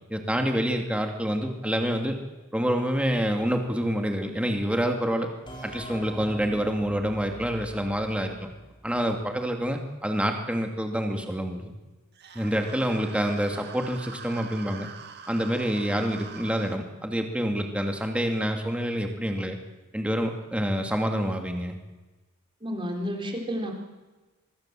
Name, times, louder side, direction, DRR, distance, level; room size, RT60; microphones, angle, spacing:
voice 1, 0.1-2.2 2.5-5.3 5.6-8.5 8.8-11.7 12.3-14.9 15.3-19.6 19.9-21.8, equal, 5° right, 4 dB, 2.4 m, -27 dB
sound 1, 5.5-9.0, equal, 20° left, 5.0 m, -43 dB
sound 2, 12.1-16.8, right 6 dB, 50° right, 1.9 m, -44 dB
voice 2, 22.6-23.7, equal, 25° right, 2 dB, 4.1 m, -31 dB
24.5 x 23.0 x 7.7 m, 1.2 s
head